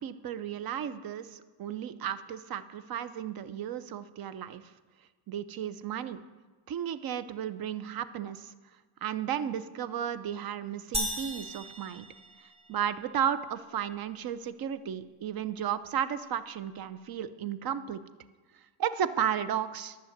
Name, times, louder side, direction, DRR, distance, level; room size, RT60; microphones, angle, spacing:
voice 1, 0.0-4.6 5.3-6.2 6.7-8.5 9.0-12.1 12.7-18.0 18.8-20.0, right 9 dB, 45° right, 14 dB, 0.7 m, -34 dB
sound 1, 10.9-12.9, equal, 10° right, 1.6 m, -36 dB
11.0 x 6.3 x 8.1 m, 1.4 s
cardioid pair, 95°, 48 cm